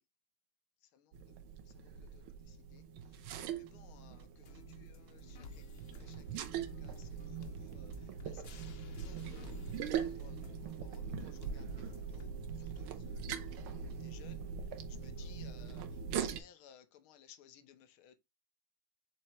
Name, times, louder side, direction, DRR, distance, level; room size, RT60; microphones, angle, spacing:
sound 1, 1.1-16.4, right 7 dB, 90° right, 1.7 m, -42 dB
voice 1, 1.8-2.1 2.5-2.8 3.6-5.6 5.9-7.1 7.4-7.9 8.2-8.4 9.1-9.7 10.0-11.8 12.1-12.3 12.6-13.3 13.5-14.4 14.9-15.8 16.1-18.2, left 9 dB, 90° left, 1.8 m, -60 dB
sound 2, 3.0-14.2, right 9 dB, 70° right, 1.3 m, -59 dB
sound 3, 4.5-12.5, left 5 dB, 70° left, 0.5 m, -57 dB
7.6 x 4.5 x 3.0 m
omnidirectional pair, 2.2 m